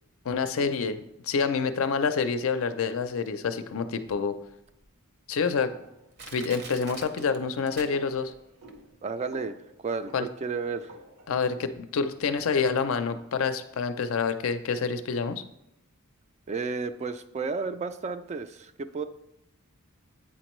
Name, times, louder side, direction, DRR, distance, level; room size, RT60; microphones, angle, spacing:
voice 1, 0.2-4.4 5.3-5.7 6.3-8.3 10.1-10.3 11.3-15.4, left 5 dB, 65° left, 10 dB, 0.5 m, -27 dB
Crushing, 4.1-4.2 4.8-4.9 5.6-5.7 6.2-8.4 8.7-8.8, right 4 dB, 50° right, 0.7 m, -44 dB
sound 1, 5.6-11.4, right 2 dB, 85° right, 0.9 m, -51 dB
voice 2, 9.0-9.6 9.8-10.9 16.5-19.0, right 4 dB, 30° right, 10 dB, 0.3 m, -32 dB
8.5 x 4.3 x 3.1 m, 0.81 s
head